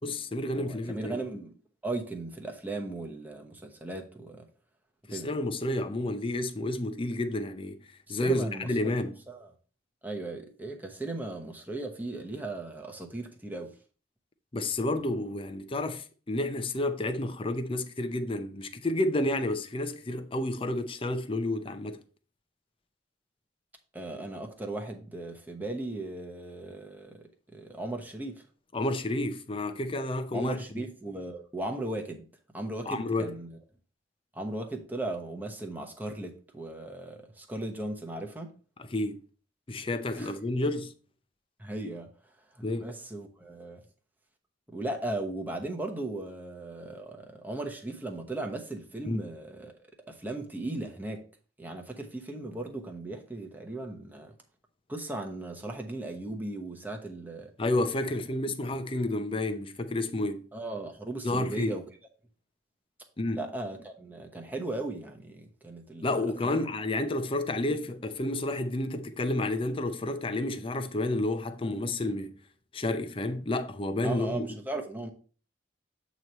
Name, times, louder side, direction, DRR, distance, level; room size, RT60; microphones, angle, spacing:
voice 1, 0.0-1.2 5.1-7.8 8.1-9.2 14.5-22.0 28.7-30.8 32.8-33.3 38.8-39.2 39.7-40.9 42.6-42.9 49.1-49.2 57.6-60.5 61.2-61.7 63.2-63.4 66.0-72.3 72.7-74.4, left 1 dB, 30° left, 0.6 m, -30 dB
voice 2, 0.6-1.5 1.8-4.4 5.1-5.3 8.1-9.0 9.3-9.5 10.0-13.7 23.9-28.4 30.3-32.2 32.5-33.5 34.3-38.5 40.2-40.3 41.6-42.1 42.8-43.8 44.7-49.8 50.1-51.2 51.6-54.3 54.9-57.5 58.6-58.7 60.5-61.8 63.3-66.7 74.0-75.1, right 2 dB, 10° right, 0.9 m, -37 dB
8.0 x 3.1 x 5.4 m
head